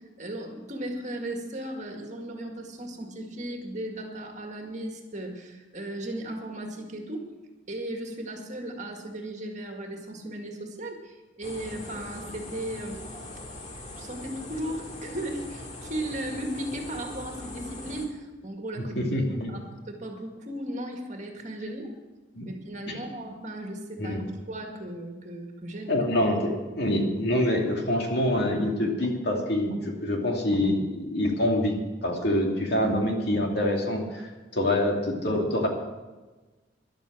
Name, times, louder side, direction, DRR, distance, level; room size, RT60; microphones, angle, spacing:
voice 1, 0.0-7.3 7.7-13.0 14.0-18.9 19.5-21.9 22.5-26.0 26.7-26.8, right 1 dB, 40° right, 3 dB, 1.9 m, -36 dB
sound 1, 11.4-18.1, left 1 dB, 35° left, 2.1 m, -41 dB
voice 2, 19.0-19.5 22.4-22.5 22.9-23.0 24.0-24.2 25.9-35.7, left 1 dB, 55° left, 1 dB, 2.4 m, -26 dB
13.0 x 11.5 x 6.1 m, 1.2 s
head